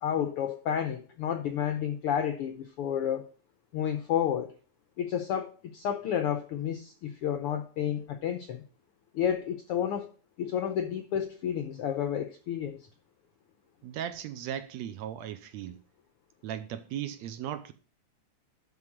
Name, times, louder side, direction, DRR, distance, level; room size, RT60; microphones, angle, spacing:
voice 1, 0.0-3.2 3.7-4.5 5.0-8.6 9.1-10.1 10.4-12.8, left 9 dB, 80° left, 1.3 m, -31 dB
voice 2, 13.8-15.8 16.4-17.7, right 10 dB, 75° right, 1.8 m, -37 dB
11.0 x 3.9 x 7.3 m
omnidirectional pair, 3.4 m